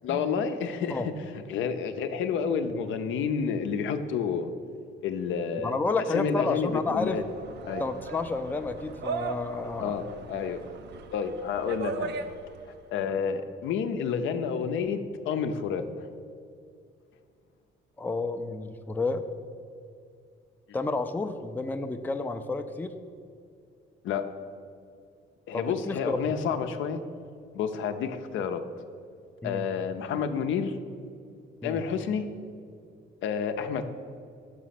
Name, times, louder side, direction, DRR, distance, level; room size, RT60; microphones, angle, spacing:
voice 1, 0.0-4.5 5.0-5.7 6.1-7.2 7.7-7.8 9.8-10.6 11.1-12.2 12.7-16.1 24.0-24.3 25.5-27.0 27.5-28.6 29.4-30.8 31.6-32.3 33.2-33.8, left 6 dB, 80° left, 8 dB, 0.5 m, -30 dB
voice 2, 5.6-7.2 7.8-9.9 18.0-19.2 20.7-22.9 25.5-26.2 29.4-29.7 31.6-31.8, left 3 dB, 10° left, 8 dB, 0.3 m, -30 dB
sound 1, 6.4-12.8, right 4 dB, 60° right, 0.5 m, -39 dB
6.1 x 5.1 x 5.7 m, 2.4 s
cardioid pair, 90°, 20 cm